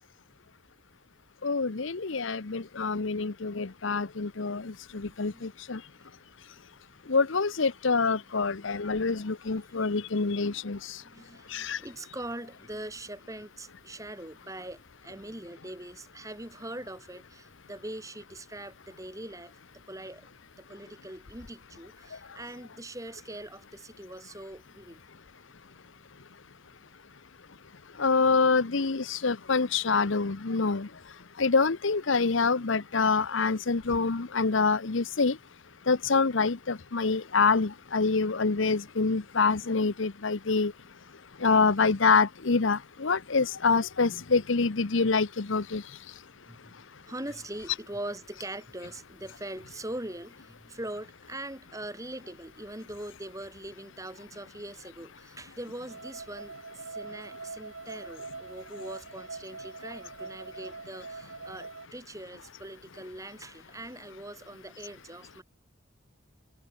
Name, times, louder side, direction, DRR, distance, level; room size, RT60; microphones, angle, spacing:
voice 1, 1.4-5.8 7.1-10.8 11.5-11.8 28.0-30.9 31.4-35.4 35.9-40.7 41.4-45.8, left 4 dB, 70° left, 0.9 m, -26 dB
voice 2, 4.9-5.4 6.0-6.1 10.3-10.7 11.0-19.5 19.9-20.3 20.6-25.0 46.5-46.7 47.1-65.4, right 1 dB, 15° right, 6.8 m, -42 dB
sound 1, 55.9-61.9, right 3 dB, 75° right, 3.0 m, -43 dB
head